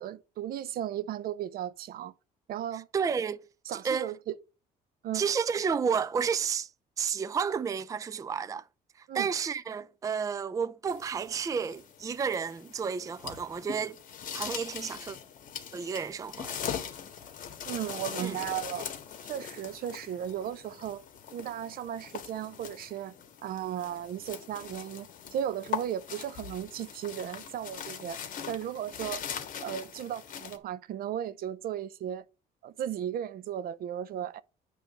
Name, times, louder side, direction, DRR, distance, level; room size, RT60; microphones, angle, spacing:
voice 1, 0.0-2.1 2.5-2.9 3.7-4.4 5.0-5.2 9.1-9.3 17.6-18.9 19.2-21.0 21.3-23.1 23.4-28.2 28.5-29.2 29.6-32.2 32.6-34.4, right 10 dB, 60° right, 0.6 m, -35 dB
voice 2, 2.7-3.4 3.7-4.1 5.1-6.7 7.0-8.7 9.0-14.0 14.3-15.2 15.7-16.6 18.2-18.4, right 6 dB, 20° right, 0.4 m, -31 dB
sound 1, 10.9-30.6, left 8 dB, 55° left, 1.5 m, -41 dB
9.0 x 3.3 x 6.7 m
cardioid pair, 110°, 17 cm